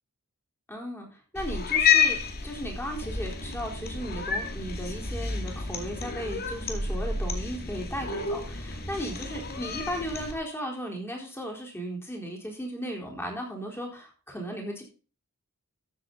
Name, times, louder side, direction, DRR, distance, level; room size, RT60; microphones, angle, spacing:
voice 1, 0.7-1.1 1.3-14.8, equal, 10° left, 0 dB, 4.0 m, -36 dB
Cat, 1.4-10.3, left 6 dB, 45° left, 2.3 m, -29 dB
14.5 x 7.9 x 3.9 m, 0.36 s
head